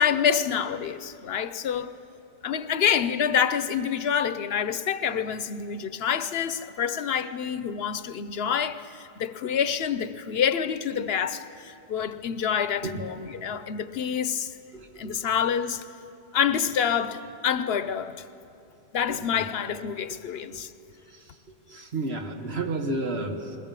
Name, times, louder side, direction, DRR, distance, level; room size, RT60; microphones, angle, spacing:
voice 1, 0.0-1.9 2.4-14.5 15.0-15.8 16.3-18.2 18.9-20.7, left 8 dB, 75° left, 1.0 m, -27 dB
voice 2, 14.7-15.2 19.1-19.5 20.1-20.2 20.5-20.6 21.1-21.3 21.7-23.6, right 2 dB, 80° right, 1.8 m, -32 dB
21.0 x 19.5 x 7.5 m
omnidirectional pair, 1.0 m